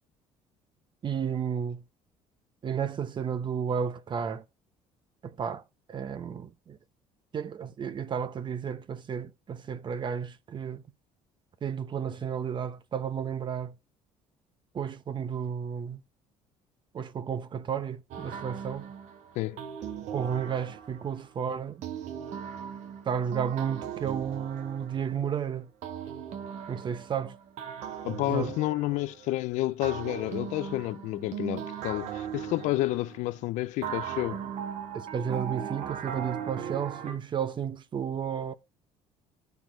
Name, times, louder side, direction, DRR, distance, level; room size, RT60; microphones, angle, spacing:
voice 1, 1.0-1.8 2.6-4.4 5.2-5.6 5.9-6.8 7.3-10.8 11.6-13.7 14.7-16.0 16.9-18.9 20.1-21.8 23.0-25.7 26.7-27.3 28.3-28.5 34.9-38.5, right 7 dB, 40° right, 1.0 m, -32 dB
sound 1, 18.1-21.2 21.8-25.4 25.8-29.3 29.8-33.3 33.8-37.1, right 8 dB, 70° right, 1.7 m, -38 dB
voice 2, 28.0-34.4, left 17 dB, 75° left, 0.6 m, -30 dB
12.0 x 4.5 x 4.6 m
cardioid pair, 95°, 12 cm